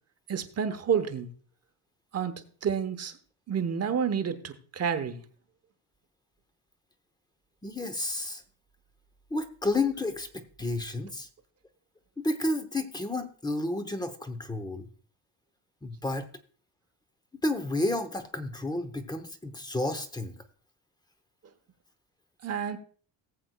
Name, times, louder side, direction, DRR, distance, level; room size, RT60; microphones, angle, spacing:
voice 1, 0.3-1.3 2.1-3.1 3.5-5.2 22.4-22.8, right 7 dB, 30° right, 0.9 m, -29 dB
voice 2, 7.6-8.4 9.3-11.3 12.2-14.9 15.8-16.3 17.4-20.4, left 2 dB, 10° left, 0.7 m, -31 dB
19.0 x 7.7 x 2.2 m
cardioid pair, 145°, 48 cm